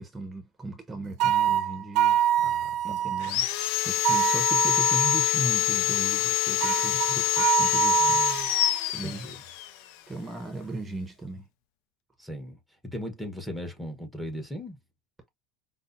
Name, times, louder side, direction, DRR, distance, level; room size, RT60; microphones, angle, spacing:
voice 1, 0.0-2.2 2.8-3.5 3.8-8.2 8.9-9.3 10.1-11.5, right 2 dB, 15° right, 0.8 m, -37 dB
sound 1, 1.2-3.3 4.0-5.3 6.6-8.8, right 11 dB, 60° right, 0.4 m, -25 dB
voice 2, 2.4-3.0 8.0-8.5 9.0-9.4 12.2-14.8, equal, 5° left, 1.1 m, -38 dB
Sawing, 3.2-9.7, left 14 dB, 70° left, 0.4 m, -25 dB
5.3 x 2.0 x 2.6 m
supercardioid pair, 100°, 0 cm